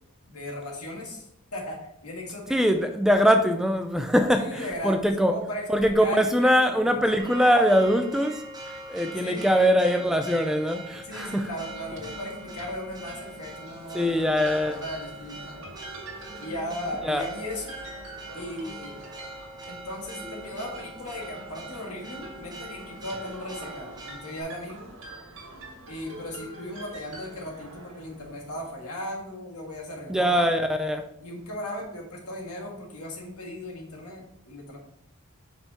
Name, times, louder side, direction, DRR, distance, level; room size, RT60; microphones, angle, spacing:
voice 1, 0.2-2.7 4.3-7.0 9.2-9.7 11.0-15.7 16.4-17.7 18.3-19.0 19.7-25.0 25.9-30.5 31.2-34.8, left 1 dB, 90° left, 1.7 m, -37 dB
voice 2, 2.5-5.3 5.7-8.4 8.9-11.5 13.9-14.8 17.0-17.2 30.1-31.1, equal, ahead, 0.3 m, -22 dB
Church bell, 7.2-24.4, right 2 dB, 20° right, 0.8 m, -42 dB
sound 1, 11.2-28.7, right 1 dB, 65° right, 1.6 m, -45 dB
5.4 x 4.5 x 4.2 m
head